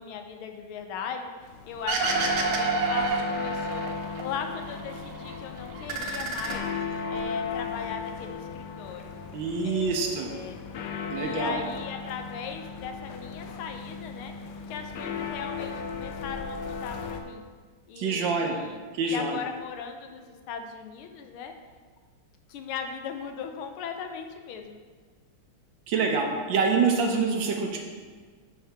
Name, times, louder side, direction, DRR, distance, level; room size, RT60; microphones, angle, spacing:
voice 1, 0.0-1.3 1.7-3.9 4.2-6.7 7.1-9.1 9.6-10.6 11.2-14.3 14.7-17.5 17.9-21.5 22.5-24.8, left 6 dB, 85° left, 5 dB, 1.5 m, -38 dB
sound 1, 1.4-17.2, left 5 dB, 70° left, 1.0 m, -36 dB
sound 2, 1.9-4.2 4.6-5.4 5.7-7.2, right 4 dB, 90° right, 1.6 m, -29 dB
voice 2, 9.3-10.3 11.1-11.5 18.0-18.6 19.0-19.4 25.9-27.8, right 4 dB, 70° right, 2 dB, 1.4 m, -26 dB
6.5 x 6.4 x 3.4 m, 1.5 s
omnidirectional pair, 2.3 m